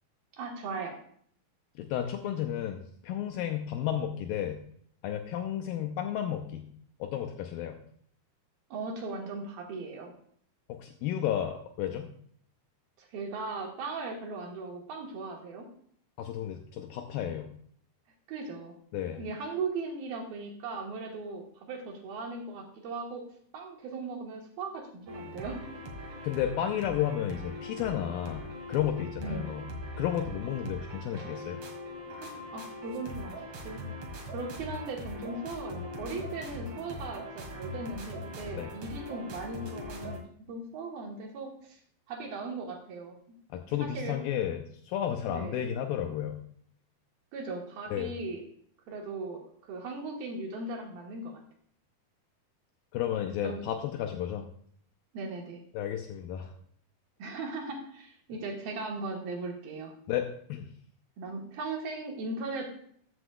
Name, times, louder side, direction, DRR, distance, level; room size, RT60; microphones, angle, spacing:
voice 1, 0.3-1.0 8.7-10.1 13.0-15.7 18.3-18.7 19.2-23.2 23.5-25.7 29.2-29.6 32.2-33.4 33.6-33.8 34.3-40.2 40.5-41.8 42.1-43.1 43.8-44.2 45.3-45.6 47.3-48.4 48.9-51.4 53.4-53.6 55.1-55.6 57.2-59.9 61.2-62.6, right 3 dB, 70° right, 0 dB, 3.2 m, -38 dB
voice 2, 1.8-4.6 5.0-6.7 7.0-7.8 10.7-12.1 16.2-17.5 18.9-19.2 26.2-29.6 30.0-31.6 38.6-38.7 43.5-46.4 47.9-48.1 52.9-54.5 55.7-56.5 60.1-60.7, left 10 dB, 80° left, 4 dB, 2.2 m, -32 dB
sound 1, 25.1-40.2, left 1 dB, 50° right, 1.9 m, -41 dB
14.0 x 7.8 x 2.3 m, 0.62 s
omnidirectional pair, 4.5 m